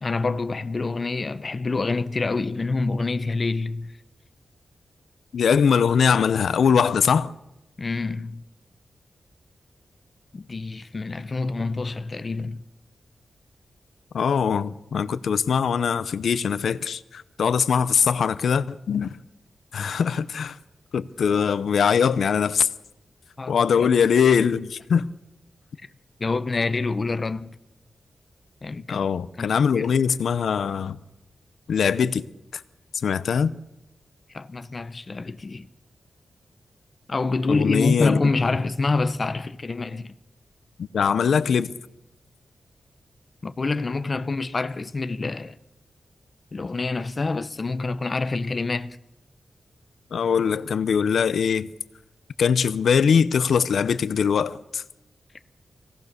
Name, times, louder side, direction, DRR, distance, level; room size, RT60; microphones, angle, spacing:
voice 1, 0.0-4.0 7.8-8.4 10.3-12.6 23.4-23.9 26.2-27.6 28.6-29.1 29.4-29.9 34.3-35.7 37.1-40.1 43.4-45.6 46.5-49.0, left 3 dB, 30° left, 0.7 m, -27 dB
voice 2, 5.3-7.3 14.1-19.2 19.7-20.6 20.9-22.7 23.5-25.1 28.9-31.0 31.7-32.2 32.5-32.6 33.0-33.5 37.5-38.2 40.8-41.7 50.1-51.7 52.4-54.8, left 6 dB, 90° left, 0.7 m, -22 dB
25.5 x 18.0 x 6.7 m
wide cardioid pair, 175°, 0 cm